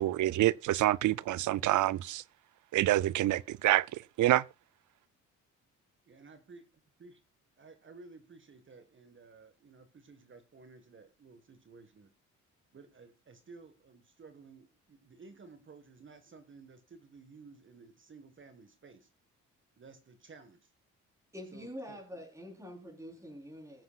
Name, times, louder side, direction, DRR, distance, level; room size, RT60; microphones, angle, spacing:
voice 1, 0.0-2.2 2.7-4.4, right 15 dB, 65° right, 0.6 m, -27 dB
voice 2, 6.1-6.7 7.0-7.2 7.6-12.1 12.7-19.1 19.8-20.7 21.5-22.0, right 4 dB, 35° right, 1.6 m, -54 dB
voice 3, 21.3-23.8, equal, 10° right, 4.1 m, -45 dB
22.5 x 7.8 x 2.4 m
cardioid pair, 80°, 32 cm